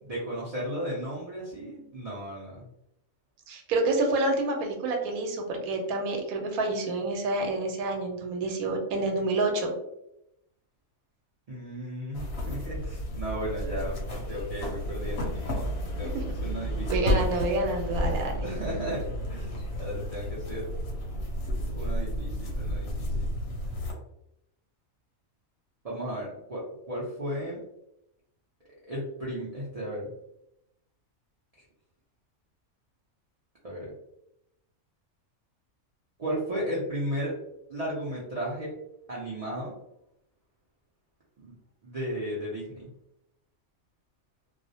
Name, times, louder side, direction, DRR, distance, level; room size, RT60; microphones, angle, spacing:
voice 1, 0.0-2.7 11.5-16.1 16.4-17.3 18.4-19.0 19.3-20.7 21.7-23.3 25.8-27.6 28.9-30.1 33.6-33.9 36.2-37.4 37.7-38.7 39.1-39.7 41.4-41.6 41.8-42.9, equal, 65° right, -6 dB, 0.3 m, -35 dB
voice 2, 3.5-9.7 16.9-18.4, right 2 dB, 85° right, 2 dB, 1.0 m, -28 dB
sound 1, 12.1-23.9, equal, 60° left, 0.7 m, -32 dB
2.4 x 2.0 x 2.6 m, 0.83 s
omnidirectional pair, 1.5 m